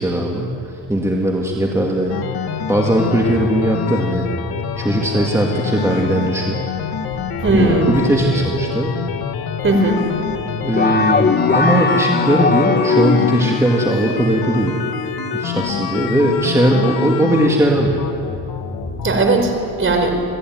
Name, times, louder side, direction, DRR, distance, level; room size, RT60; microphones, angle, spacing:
voice 1, 0.0-2.1 2.7-4.3 4.8-6.6 7.5-8.9 10.6-14.8 15.3-18.0, right 1 dB, 5° right, -1 dB, 2.7 m, -18 dB
sound 1, 2.1-19.2, left 7 dB, 70° left, 2.4 m, -26 dB
voice 2, 7.4-7.9 9.6-10.0 10.3-10.4 19.0-20.2, right 2 dB, 35° right, 4 dB, 5.3 m, -17 dB
sound 2, 10.8-13.6, left 4 dB, 25° left, 1.6 m, -18 dB
27.5 x 19.0 x 9.7 m, 2.5 s
cardioid pair, 105°, 37 cm